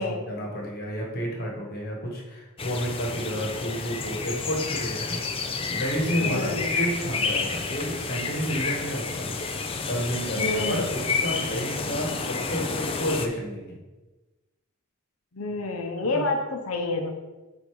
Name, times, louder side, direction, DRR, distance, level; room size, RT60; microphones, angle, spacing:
voice 1, 0.0-9.3 9.8-13.8 16.0-16.2, equal, 45° left, -1 dB, 1.3 m, -31 dB
sound 1, 2.6-13.3, left 4 dB, 25° left, 0.4 m, -30 dB
voice 2, 6.2-6.8 10.4-10.8 15.3-17.1, left 2 dB, 75° left, 4 dB, 0.7 m, -28 dB
8.0 x 2.7 x 4.7 m, 1.2 s
head